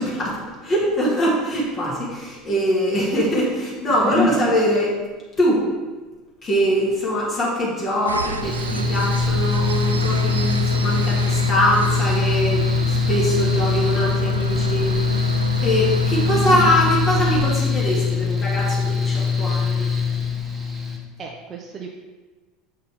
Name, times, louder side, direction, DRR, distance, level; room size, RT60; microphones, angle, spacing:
voice 1, 0.0-5.0 5.4-5.7 6.4-19.9, equal, 30° left, -5 dB, 1.8 m, -22 dB
sound 1, 8.1-17.5, right 4 dB, 85° right, 0.3 m, -29 dB
Mechanical fan, 8.4-21.0, left 5 dB, 15° right, 1.3 m, -22 dB
voice 2, 21.2-21.9, right 5 dB, 40° right, 0 dB, 0.7 m, -35 dB
6.8 x 5.5 x 3.5 m, 1.3 s
figure-of-eight pair, 75°, 0 cm